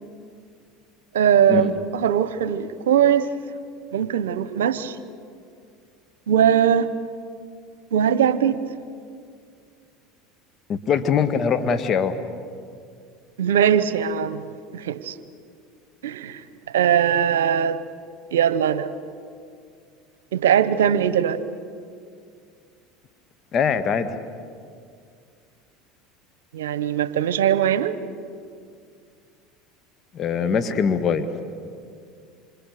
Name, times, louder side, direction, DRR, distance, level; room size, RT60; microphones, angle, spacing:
voice 1, 1.1-3.3 3.9-5.0 6.3-6.9 7.9-8.6 13.4-14.5 14.7-15.1 16.0-16.4 16.7-17.8 18.3-18.9 20.3-21.4 26.5-28.0, right 9 dB, 85° right, 14 dB, 1.0 m, -20 dB
voice 2, 10.7-12.1 23.5-24.2 30.1-31.3, left 6 dB, 45° left, 12 dB, 1.9 m, -22 dB
27.5 x 27.0 x 6.8 m, 2.2 s
hypercardioid pair, 85°, 0 cm